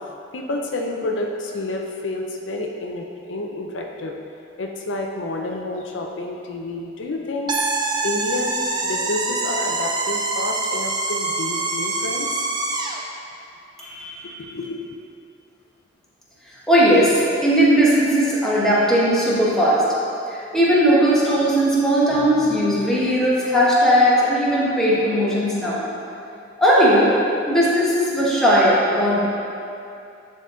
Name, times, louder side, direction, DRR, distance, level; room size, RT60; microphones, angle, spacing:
voice 1, 0.3-4.1 4.6-12.5 14.4-14.9, left 2 dB, 70° left, 1 dB, 0.6 m, -29 dB
sound 1, 7.5-13.0, right 3 dB, 25° right, 0.5 m, -25 dB
voice 2, 13.8-14.4 16.7-19.8 20.3-25.8 26.6-27.1 27.5-29.3, equal, 5° left, -8 dB, 1.3 m, -18 dB
10.0 x 4.0 x 3.9 m, 2.6 s
head